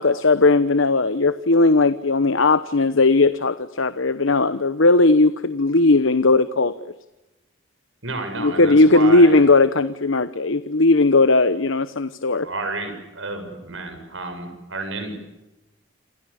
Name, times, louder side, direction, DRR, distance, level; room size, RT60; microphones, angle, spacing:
voice 1, 0.0-6.7 8.4-12.5, left 3 dB, 75° left, 13 dB, 1.1 m, -17 dB
voice 2, 8.0-9.5 12.4-15.1, right 2 dB, 70° right, 6 dB, 7.3 m, -31 dB
28.5 x 27.5 x 7.2 m, 0.97 s
head